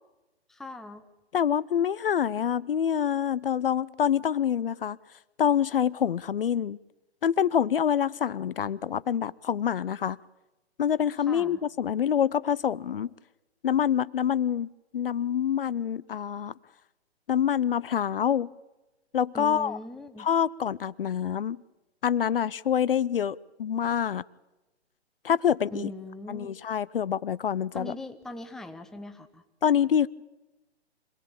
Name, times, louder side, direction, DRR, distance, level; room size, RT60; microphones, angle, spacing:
voice 1, 0.5-1.0 11.3-11.6 19.3-20.3 25.7-26.5 27.7-29.4, left 1 dB, ahead, 0.8 m, -40 dB
voice 2, 1.3-5.0 5.4-6.8 7.2-10.2 10.8-13.1 13.6-14.7 14.9-16.5 17.3-18.5 19.1-19.8 20.2-21.6 22.0-24.2 25.2-25.9 26.3-28.0 29.6-30.1, left 8 dB, 55° left, 0.7 m, -26 dB
26.0 x 17.5 x 8.7 m
figure-of-eight pair, 140°, 33 cm